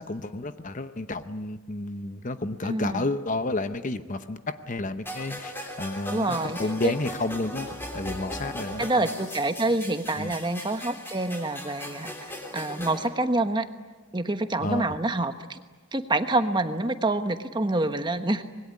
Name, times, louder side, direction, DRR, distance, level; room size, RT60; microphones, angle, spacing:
voice 1, 0.0-9.1 10.2-10.3 14.6-15.0, left 2 dB, 35° left, 11 dB, 0.9 m, -31 dB
voice 2, 2.6-3.1 6.1-6.6 6.8-6.9 8.8-12.1 12.5-13.7 14.1-15.6 15.9-18.4, right 2 dB, 20° right, 8 dB, 1.2 m, -27 dB
sound 1, 5.1-13.1, equal, 10° left, 3.2 m, -38 dB
25.5 x 21.0 x 9.9 m, 1.3 s
head